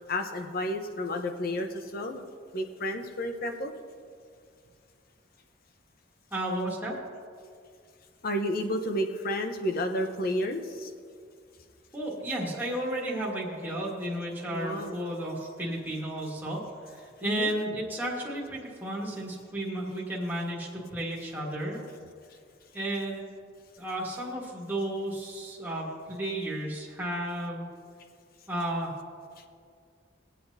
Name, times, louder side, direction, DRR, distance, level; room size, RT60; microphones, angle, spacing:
voice 1, 0.1-2.2 2.5-3.7 8.2-10.9 14.5-15.0 17.2-17.5, left 1 dB, 50° left, 5 dB, 0.9 m, -31 dB
voice 2, 6.3-6.9 11.9-16.6 16.9-21.8 22.7-23.3 23.8-27.6 28.5-28.9, right 1 dB, 10° right, -6 dB, 1.7 m, -33 dB
21.5 x 8.5 x 2.8 m, 2.2 s
head